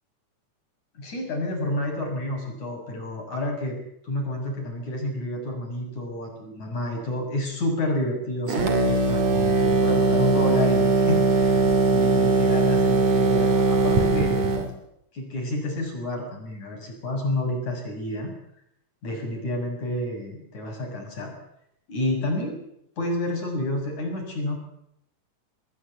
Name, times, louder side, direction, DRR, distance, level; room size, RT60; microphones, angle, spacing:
voice 1, 1.0-3.8 4.0-14.4 15.1-18.3 19.0-21.3 21.9-22.6 23.0-24.6, left 1 dB, 65° left, 2 dB, 8.1 m, -29 dB
sound 1, 8.5-14.7, right 3 dB, 60° right, 3.7 m, -20 dB
27.5 x 19.0 x 8.3 m, 0.78 s
omnidirectional pair, 3.7 m